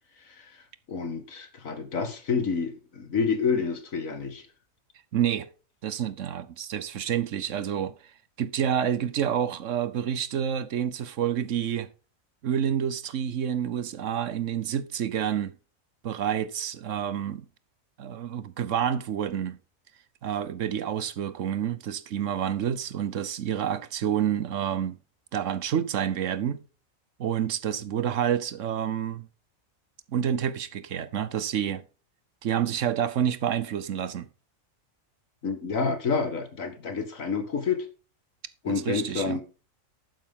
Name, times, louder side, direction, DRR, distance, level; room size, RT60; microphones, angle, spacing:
voice 1, 0.9-4.4 35.4-37.9 38.6-39.4, left 5 dB, 75° left, 2.2 m, -28 dB
voice 2, 5.1-5.5 5.8-7.9 8.4-11.9 12.4-15.5 16.0-17.5 18.0-19.6 20.2-25.0 25.3-26.6 27.2-29.3 30.1-31.8 32.4-34.3 38.7-39.4, right 9 dB, 70° right, 1.1 m, -28 dB
11.5 x 9.4 x 3.7 m
omnidirectional pair, 1.4 m